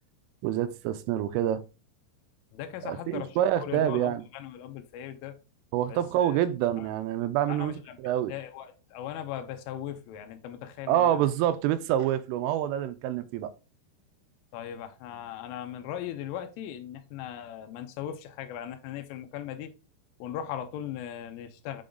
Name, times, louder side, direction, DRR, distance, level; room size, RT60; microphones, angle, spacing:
voice 1, 0.4-1.6 2.8-4.2 5.7-8.3 10.9-13.5, right 11 dB, 85° right, 3.1 m, -27 dB
voice 2, 2.5-5.3 5.9-6.0 6.8-6.9 7.5-8.0 8.3-11.2 14.5-19.7 20.2-21.8, left 10 dB, 85° left, 3.3 m, -38 dB
7.7 x 3.8 x 3.7 m
omnidirectional pair, 5.8 m